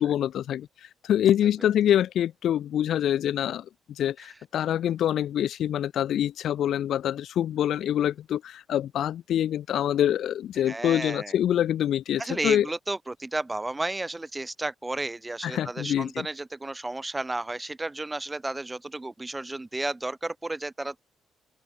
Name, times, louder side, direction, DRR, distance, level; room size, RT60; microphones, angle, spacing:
voice 1, 0.0-12.7 15.4-16.3, left 11 dB, 70° left, 0.3 m, -25 dB
voice 2, 10.7-11.3 12.2-21.0, right 2 dB, 15° right, 4.3 m, -32 dB
open air
cardioid pair, 90°, 0 cm